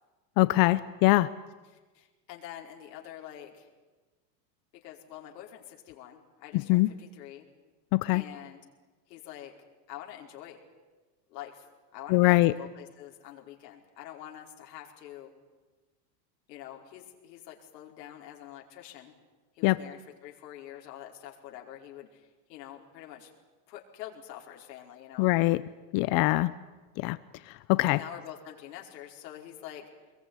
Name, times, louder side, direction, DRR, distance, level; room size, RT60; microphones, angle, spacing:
voice 1, 0.4-1.3 6.5-6.9 7.9-8.2 12.1-12.5 19.6-19.8 25.2-25.6 25.9-26.5 27.0-27.2 27.7-28.0, left 20 dB, 45° left, 15 dB, 0.8 m, -22 dB
voice 2, 1.7-3.7 4.7-7.5 8.1-8.6 9.1-9.5 9.9-10.6 11.3-11.6 11.9-15.3 16.5-19.1 19.5-23.3 23.7-25.3 27.9-29.8, left 11 dB, 75° left, 0 dB, 5.1 m, -46 dB
26.0 x 22.0 x 9.8 m, 1.2 s
supercardioid pair, 140°, 50 cm